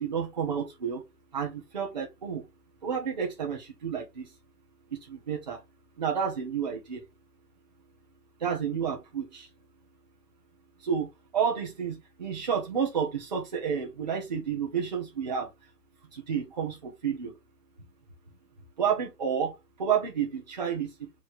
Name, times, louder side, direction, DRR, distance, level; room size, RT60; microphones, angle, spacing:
voice 1, 0.0-1.0 1.3-2.4 2.8-4.2 5.1-5.6 6.0-7.0 8.4-9.4 10.8-11.1 11.3-15.5 16.1-17.3 18.8-19.5 19.8-20.9, right 7 dB, 30° right, 0.7 m, -30 dB
5.2 x 3.2 x 2.7 m
figure-of-eight pair, 145°, 47 cm